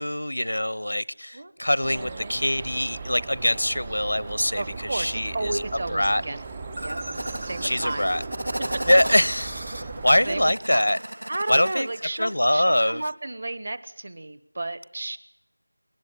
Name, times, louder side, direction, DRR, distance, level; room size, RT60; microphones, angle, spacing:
voice 1, 0.0-5.6 5.9-6.2 7.6-8.2 8.9-9.5 9.8-11.0 11.5-11.9 12.2-13.0, left 1 dB, 85° left, 0.8 m, -23 dB
sound 1, 1.8-10.5, right 4 dB, 15° right, 0.8 m, -38 dB
voice 2, 1.9-2.5 4.6-6.4 6.8-7.0 7.4-8.1 9.9-10.9 11.3-15.2, right 2 dB, 35° right, 1.2 m, -33 dB
sound 2, 6.8-12.4, right 1 dB, 70° right, 0.8 m, -35 dB
20.5 x 18.5 x 9.9 m
figure-of-eight pair, 175°, 0 cm